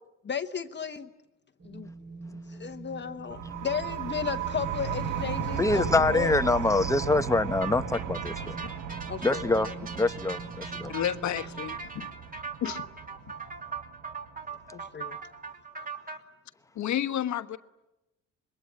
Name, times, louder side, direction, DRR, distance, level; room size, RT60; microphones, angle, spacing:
voice 1, 0.2-1.1 1.6-1.9 2.5-6.3 9.1-9.5 14.7-15.2, left 7 dB, 35° left, 7 dB, 1.1 m, -34 dB
Wind, 1.6-11.6, right 3 dB, 55° right, 7.4 m, -45 dB
sound 1, 3.3-14.7, right 8 dB, 80° right, 1.6 m, -36 dB
voice 2, 5.6-8.6 9.2-10.9, left 2 dB, 10° left, 10 dB, 1.0 m, -25 dB
sound 2, 7.6-16.2, right 5 dB, 30° right, 2.9 m, -40 dB
voice 3, 10.9-12.1 12.6-12.8 16.7-17.6, left 10 dB, 70° left, 8 dB, 1.3 m, -31 dB
26.5 x 22.0 x 9.9 m, 0.98 s
cardioid pair, 90°, 30 cm